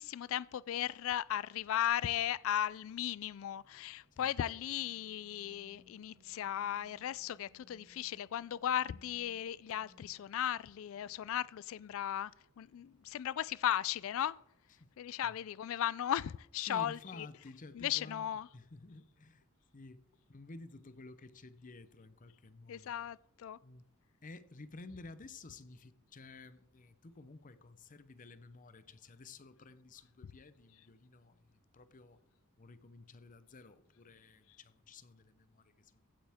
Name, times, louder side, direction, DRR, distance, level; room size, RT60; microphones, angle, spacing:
voice 1, 0.0-12.3 12.6-14.4 15.0-17.0 17.7-18.5 22.7-23.6, left 10 dB, 65° left, 0.3 m, -36 dB
sound 1, 1.6-15.4, right 1 dB, 85° right, 3.0 m, -69 dB
voice 2, 16.6-18.3 18.5-19.4 19.7-20.0 20.3-23.0 23.6-23.8 24.2-32.2 32.6-36.1, left 3 dB, 40° left, 0.7 m, -53 dB
15.5 x 8.8 x 3.6 m
head